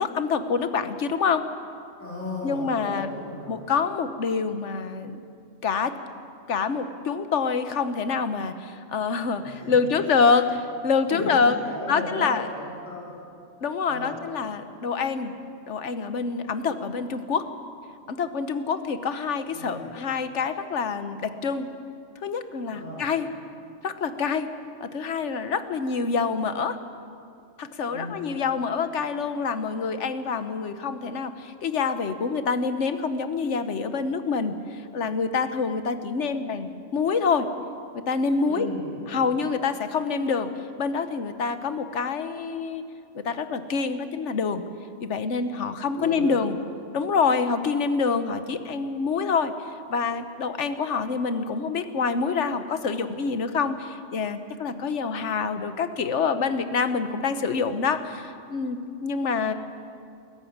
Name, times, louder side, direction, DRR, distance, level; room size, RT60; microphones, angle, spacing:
voice 1, 0.0-1.4 2.4-3.1 3.5-5.2 5.6-5.9 6.5-11.6 11.9-12.5 13.6-15.3 15.7-17.5 18.1-21.7 22.2-23.3 23.8-24.5 24.8-26.8 27.6-37.5 37.9-38.7 39.1-40.5 40.8-42.8 43.1-44.6 45.0-46.6 46.9-49.5 49.9-59.5, left 5 dB, 70° left, 10 dB, 1.3 m, -26 dB
voice 2, 2.0-3.6 9.4-9.8 11.1-13.1 13.8-14.1 19.5-19.9 22.7-23.1 27.9-28.1 38.4-39.3 46.0-46.5, left 2 dB, 10° left, -6 dB, 4.2 m, -35 dB
21.0 x 14.0 x 9.4 m, 2.4 s
omnidirectional pair, 1.3 m